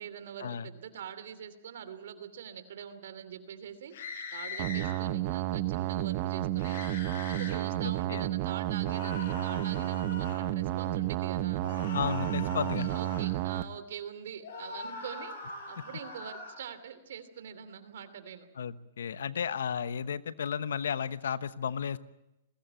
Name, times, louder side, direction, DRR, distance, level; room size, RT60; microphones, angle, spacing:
voice 1, 0.0-3.9 4.3-7.0 7.3-11.6 12.8-15.3 15.7-18.5, right 8 dB, 70° right, 11 dB, 2.8 m, -44 dB
sound 1, 3.9-4.9 6.6-7.6 8.8-10.4 11.6-13.3 14.4-16.6, left 3 dB, 60° left, 7.5 m, -42 dB
sound 2, 4.6-13.6, right 14 dB, 45° right, 0.9 m, -31 dB
voice 2, 7.8-8.2 11.9-12.9 15.8-15.9 18.6-22.0, left 7 dB, 85° left, 14 dB, 1.0 m, -33 dB
21.5 x 17.0 x 9.0 m, 0.93 s
hypercardioid pair, 145°, 0 cm